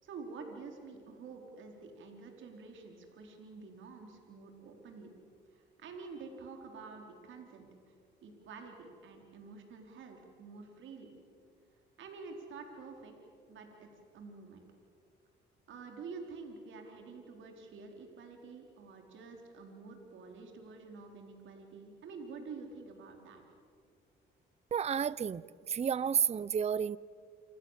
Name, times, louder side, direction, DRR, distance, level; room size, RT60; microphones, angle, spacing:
voice 1, 0.0-5.1 5.5-7.9 8.2-11.1 12.0-13.1 13.5-13.9 14.1-14.6 15.7-23.4, right 4 dB, 75° right, 4.4 m, -48 dB
voice 2, 24.7-27.0, right 8 dB, 35° right, 0.6 m, -31 dB
28.5 x 27.5 x 7.5 m
cardioid pair, 90°, 20 cm